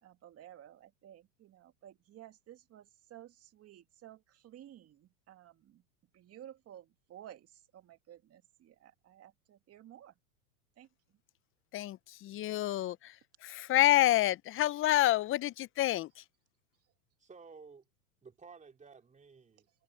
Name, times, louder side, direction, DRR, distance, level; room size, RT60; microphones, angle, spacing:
voice 1, 0.0-5.8 6.1-10.1 10.8-10.9, right 11 dB, 30° right, 2.5 m, -54 dB
voice 2, 11.7-13.1 13.4-16.1, left 15 dB, 30° left, 0.8 m, -28 dB
voice 3, 17.2-17.9 18.2-19.7, right 5 dB, 15° right, 3.5 m, -54 dB
hypercardioid pair, 110°, 45 cm